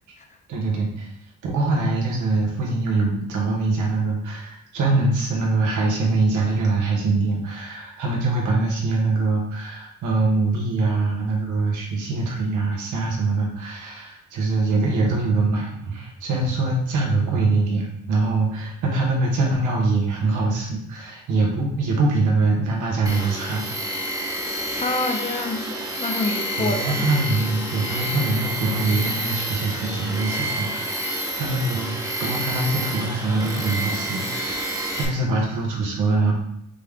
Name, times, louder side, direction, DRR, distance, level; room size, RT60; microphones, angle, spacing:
voice 1, 0.5-1.1 1.4-23.6 24.0-24.1 24.7-24.9 26.2-31.0 31.4-36.3, right 3 dB, 85° right, -1 dB, 1.3 m, -23 dB
Tools, 23.1-35.1, right 1 dB, 10° right, 1.0 m, -29 dB
voice 2, 24.8-27.1, left 3 dB, 25° left, 4 dB, 0.7 m, -27 dB
5.1 x 2.4 x 3.5 m, 0.74 s
cardioid pair, 90°, 30 cm